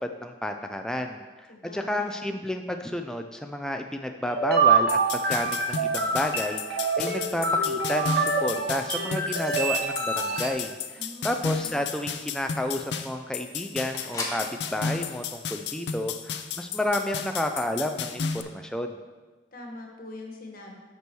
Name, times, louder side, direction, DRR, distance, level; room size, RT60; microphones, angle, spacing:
voice 1, 0.0-19.0, left 1 dB, 5° left, 4 dB, 0.4 m, -31 dB
voice 2, 1.5-2.4 11.0-11.8 19.5-20.8, left 2 dB, 55° left, 1 dB, 1.4 m, -43 dB
sound 1, 4.3-10.5, right 4 dB, 60° right, 0.9 m, -26 dB
sound 2, 4.9-18.4, left 6 dB, 75° left, 0.5 m, -33 dB
sound 3, 9.4-14.5, left 2 dB, 20° left, 1.3 m, -43 dB
8.3 x 6.1 x 4.6 m, 1.3 s
head